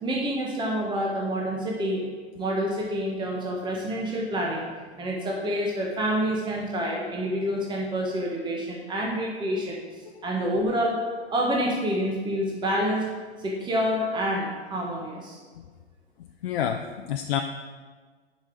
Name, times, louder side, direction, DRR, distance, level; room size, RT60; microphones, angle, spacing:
voice 1, 0.0-2.1 2.4-4.7 5.0-9.8 10.2-11.0 11.3-13.1 13.4-15.4, equal, 15° right, -2 dB, 1.4 m, -27 dB
voice 2, 16.4-17.4, left 9 dB, 55° left, 4 dB, 0.6 m, -28 dB
10.5 x 5.3 x 5.0 m, 1.5 s
figure-of-eight pair, 105°, 33 cm